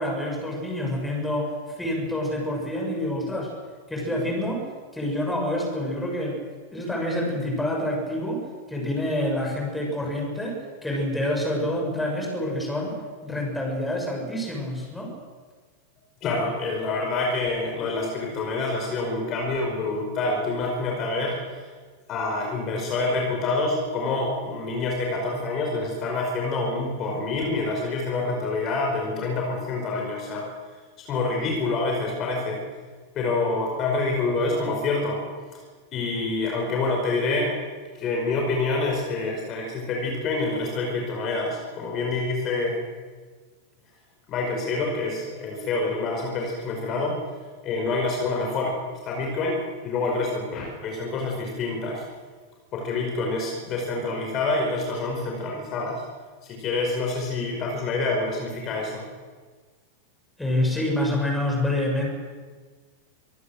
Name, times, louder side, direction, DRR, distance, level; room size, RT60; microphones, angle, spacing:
voice 1, 0.0-1.5 1.8-3.5 3.9-4.6 4.9-6.4 6.7-8.4 8.7-12.9 13.2-15.1 60.4-62.1, left 1 dB, 5° left, 0 dB, 7.0 m, -27 dB
voice 2, 16.2-21.7 22.1-30.5 31.1-32.6 33.2-35.2 35.5-35.6 35.9-37.5 38.0-42.8 44.3-47.2 47.6-52.0 52.7-56.0 56.4-59.0, left 3 dB, 35° left, 0 dB, 5.2 m, -27 dB
25.0 x 19.0 x 6.6 m, 1.4 s
figure-of-eight pair, 90°, 0 cm